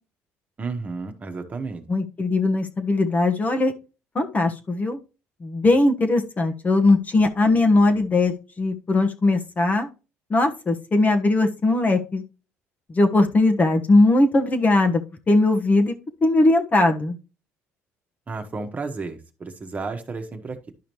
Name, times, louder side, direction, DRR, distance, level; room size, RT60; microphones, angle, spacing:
voice 1, 0.6-1.8 18.3-20.7, right 4 dB, 30° right, 5 dB, 1.4 m, -32 dB
voice 2, 1.9-3.7 4.1-5.0 5.4-9.9 10.3-12.2 12.9-15.0 15.3-15.9 16.2-17.2, left 2 dB, 30° left, 4 dB, 1.3 m, -19 dB
11.5 x 5.0 x 3.1 m, 0.31 s
supercardioid pair, 90°, 5 cm